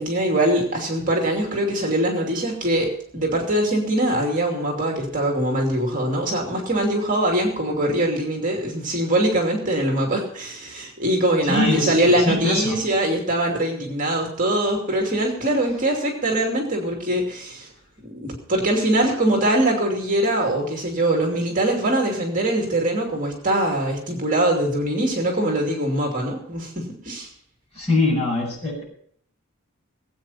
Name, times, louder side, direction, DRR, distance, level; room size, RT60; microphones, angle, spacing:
voice 1, 0.0-17.7 18.0-27.3, right 1 dB, 35° right, 1 dB, 2.6 m, -22 dB
voice 2, 11.4-12.0 12.3-12.8 27.7-28.8, left 2 dB, 30° left, -3 dB, 6.8 m, -22 dB
19.0 x 8.7 x 5.7 m, 0.62 s
head